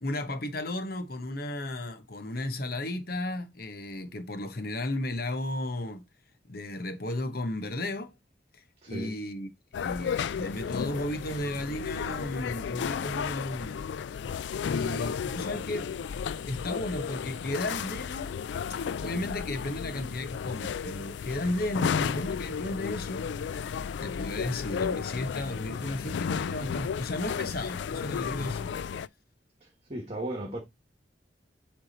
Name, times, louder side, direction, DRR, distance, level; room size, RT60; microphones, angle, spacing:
voice 1, 0.0-6.0 6.5-8.1 8.9-9.5 9.8-13.8 14.6-15.9 16.4-18.3 19.0-23.3 24.0-28.7, left 1 dB, 55° left, 1.1 m, -34 dB
voice 2, 8.8-9.1 29.6-30.6, right 1 dB, 35° right, 1.3 m, -36 dB
sound 1, 9.7-29.1, left 7 dB, 70° left, 0.3 m, -33 dB
7.9 x 3.5 x 4.2 m
head